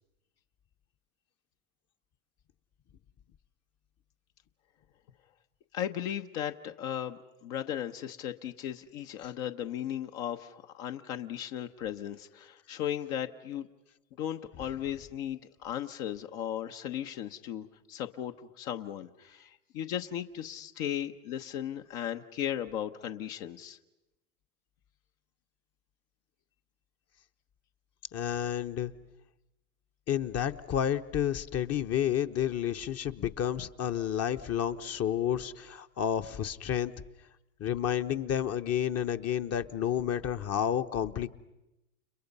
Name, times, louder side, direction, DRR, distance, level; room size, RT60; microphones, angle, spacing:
voice 1, 5.7-13.7 14.2-23.8, left 10 dB, 65° left, 5 dB, 1.3 m, -36 dB
voice 2, 28.1-28.9 30.1-36.9 37.6-41.3, left 10 dB, 35° left, 9 dB, 1.0 m, -30 dB
30.0 x 30.0 x 5.5 m, 0.96 s
hypercardioid pair, 95°, 45 cm